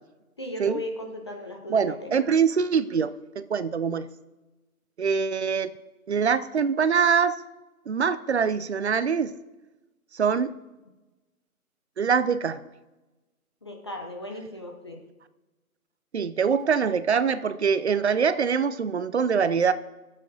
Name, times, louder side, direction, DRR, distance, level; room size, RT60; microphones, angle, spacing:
voice 1, 0.4-2.2 13.6-15.0, left 1 dB, 20° left, 2 dB, 0.6 m, -36 dB
voice 2, 1.7-3.1 3.4-4.1 5.0-5.7 6.1-7.4 7.9-9.3 10.1-10.5 12.0-12.6 16.1-19.7, right 6 dB, 50° right, 15 dB, 0.6 m, -24 dB
20.5 x 7.5 x 4.0 m, 1.1 s
hypercardioid pair, 155°, 44 cm